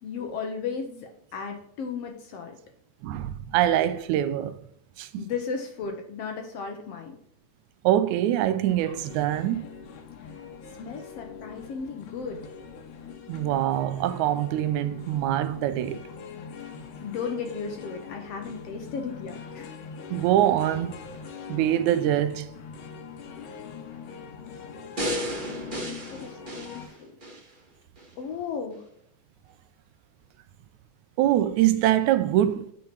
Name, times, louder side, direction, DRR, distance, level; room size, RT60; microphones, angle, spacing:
voice 1, 0.0-2.6 5.2-7.2 10.8-12.4 17.0-19.7 23.5-23.6 25.7-27.0 28.2-28.9, left 5 dB, 70° left, 1.6 m, -35 dB
voice 2, 3.0-4.6 5.0-5.2 7.8-9.7 13.3-16.0 20.1-21.0 21.5-22.5 31.2-32.7, right 12 dB, 80° right, 1.9 m, -24 dB
sound 1, 8.7-26.9, left 6 dB, 85° left, 2.5 m, -43 dB
sound 2, 25.0-27.5 28.0-28.1, equal, 25° right, 1.3 m, -33 dB
8.5 x 4.5 x 4.5 m
omnidirectional pair, 3.5 m